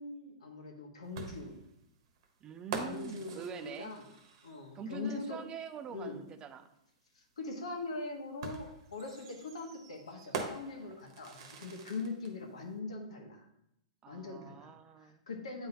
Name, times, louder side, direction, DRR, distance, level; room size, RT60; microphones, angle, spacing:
voice 1, 0.0-1.5 2.8-4.0 4.4-5.4 5.9-6.2 7.1-13.4 14.1-14.7 15.0-15.7, left 3 dB, 85° left, 1 dB, 1.4 m, -42 dB
sound 1, 1.2-4.8 6.3-6.4 8.4-12.3, right 5 dB, 55° right, 1.0 m, -44 dB
voice 2, 2.4-4.0 4.7-6.7 14.0-15.2, right 7 dB, 25° right, 11 dB, 0.4 m, -45 dB
8.6 x 3.9 x 2.8 m, 0.78 s
hypercardioid pair, 125°, 3 cm